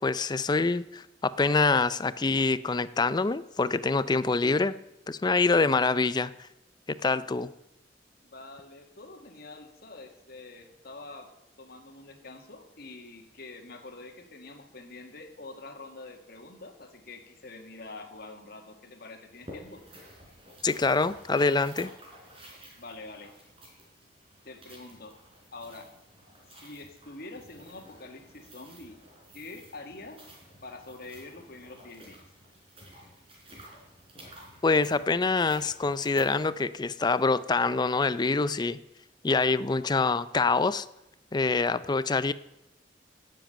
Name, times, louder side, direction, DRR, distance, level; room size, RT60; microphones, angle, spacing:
voice 1, 0.0-4.8 5.1-6.3 7.0-7.5 20.6-21.9 34.6-38.8 39.2-40.9 41.3-42.3, left 3 dB, 25° left, 16 dB, 0.4 m, -25 dB
voice 2, 8.2-11.3 11.6-19.8 22.8-23.3 24.4-25.2 25.5-25.9 26.6-29.0 29.3-30.3 30.6-32.3, left 2 dB, 60° left, 5 dB, 1.8 m, -45 dB
sound 1, 19.3-36.5, equal, 35° right, 4.0 m, -52 dB
10.5 x 7.6 x 8.9 m, 0.88 s
head